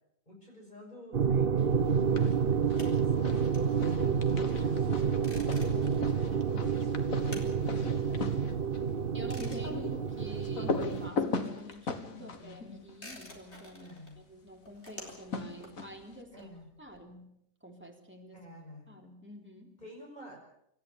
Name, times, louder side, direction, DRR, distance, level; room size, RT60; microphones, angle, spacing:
voice 1, 0.3-8.0 10.5-10.7 12.1-12.6 13.8-14.2 16.3-16.7 18.3-19.0 19.8-20.4, left 1 dB, 30° left, -1 dB, 6.4 m, -51 dB
sound 1, 1.1-11.1, right 6 dB, 45° right, 1.0 m, -29 dB
sound 2, 1.9-2.4 2.7-13.7 14.9-16.2, left 4 dB, 75° left, 2.1 m, -39 dB
sound 3, 2.8-10.9 11.2-17.0, left 1 dB, 50° left, 4.4 m, -51 dB
voice 2, 9.1-16.5 16.8-18.5 18.9-19.8, equal, 10° right, 1 dB, 3.5 m, -48 dB
26.5 x 14.0 x 8.5 m, 0.76 s
omnidirectional pair, 1.4 m